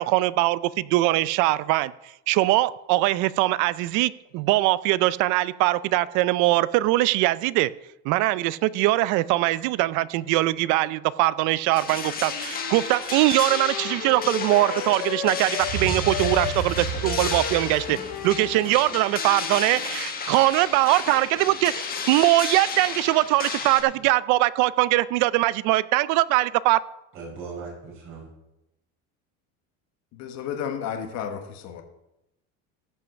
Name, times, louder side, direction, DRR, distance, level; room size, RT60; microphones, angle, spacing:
voice 1, 0.0-1.9 2.3-7.7 8.0-18.0 18.2-26.8, right 17 dB, 55° right, 0.5 m, -22 dB
sound 1, 11.7-23.8, left 6 dB, 25° left, 1.4 m, -32 dB
Wind instrument woodwind instrument, 12.0-15.8 16.0-20.2, left 10 dB, 65° left, 1.9 m, -35 dB
voice 2, 13.0-14.1 27.1-28.3, right 4 dB, 35° right, 5.2 m, -41 dB
sound 2, 15.6-18.7, right 6 dB, 75° right, 4.0 m, -32 dB
voice 3, 30.1-31.8, left 8 dB, 50° left, 1.5 m, -32 dB
15.0 x 5.7 x 6.3 m
cardioid pair, 160°, 35 cm